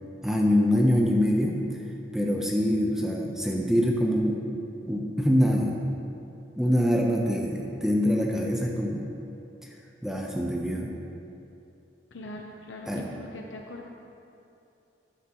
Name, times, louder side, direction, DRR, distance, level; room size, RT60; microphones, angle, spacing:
voice 1, 0.2-1.6 2.1-4.5 4.8-5.8 6.6-9.1 10.0-10.9 12.9-13.1, equal, 5° right, -1 dB, 0.8 m, -24 dB
voice 2, 12.1-13.9, left 1 dB, 85° left, 0 dB, 0.8 m, -41 dB
13.0 x 9.9 x 3.0 m, 2.7 s
head